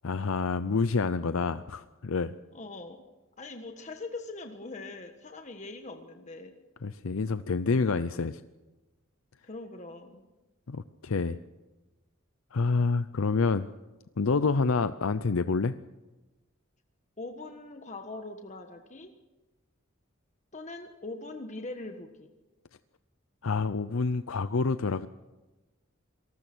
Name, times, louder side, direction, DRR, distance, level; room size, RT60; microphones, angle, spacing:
voice 1, 0.0-2.3 6.8-8.4 10.7-11.4 12.5-13.7 14.2-15.7 23.4-25.1, left 4 dB, 80° left, 12 dB, 0.6 m, -28 dB
voice 2, 2.5-3.0 3.4-6.5 9.4-10.2 17.2-19.1 20.5-22.3, left 2 dB, 35° left, 5 dB, 1.5 m, -42 dB
26.5 x 19.5 x 6.2 m, 1.1 s
head